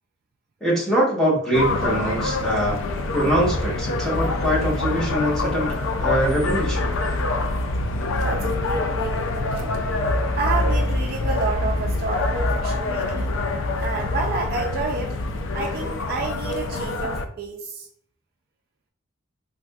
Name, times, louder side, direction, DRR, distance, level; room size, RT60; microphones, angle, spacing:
voice 1, 0.6-2.8 3.1-6.9, equal, ahead, -6 dB, 1.0 m, -23 dB
sound 1, 1.5-17.3, left 2 dB, 65° left, 0.4 m, -25 dB
voice 2, 8.2-9.8 10.3-13.3 13.8-15.2 15.5-17.9, right 3 dB, 45° right, 1 dB, 0.3 m, -30 dB
3.4 x 2.6 x 2.3 m, 0.63 s
head